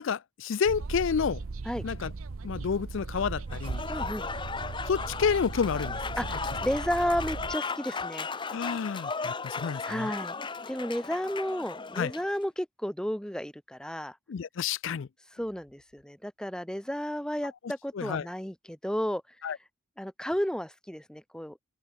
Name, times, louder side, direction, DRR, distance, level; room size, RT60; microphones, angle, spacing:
voice 1, 0.0-1.4 1.8-2.1 2.4-3.8 4.9-6.0 8.5-10.1 12.0-12.1 14.3-15.1 17.9-18.3 19.4-19.6, left 6 dB, 60° left, 0.4 m, -29 dB
sound 1, 0.7-7.6, right 3 dB, 75° right, 0.7 m, -37 dB
Applause / Crowd, 3.5-12.3, left 4 dB, 20° left, 0.8 m, -36 dB
voice 2, 3.9-4.3 6.2-8.3 9.8-10.3 10.7-14.2 15.3-19.2 20.0-21.6, equal, 5° left, 1.1 m, -32 dB
open air
head